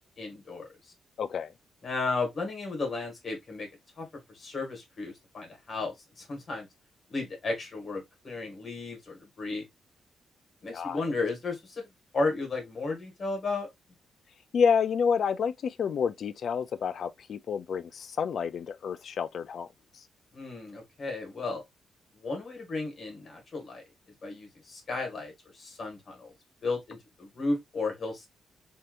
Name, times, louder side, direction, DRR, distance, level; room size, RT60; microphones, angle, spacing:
voice 1, 0.2-0.7 1.8-3.7 4.0-4.1 4.3-6.7 7.1-9.6 10.6-11.8 12.1-13.7 20.3-21.6 22.2-23.9 24.2-26.3 26.6-28.3, left 3 dB, 35° left, 1.6 m, -34 dB
voice 2, 1.2-1.5 10.7-11.0 14.5-19.7 19.9-20.0, left 6 dB, 55° left, 0.3 m, -29 dB
3.4 x 2.8 x 2.4 m
wide cardioid pair, 160°, 0 cm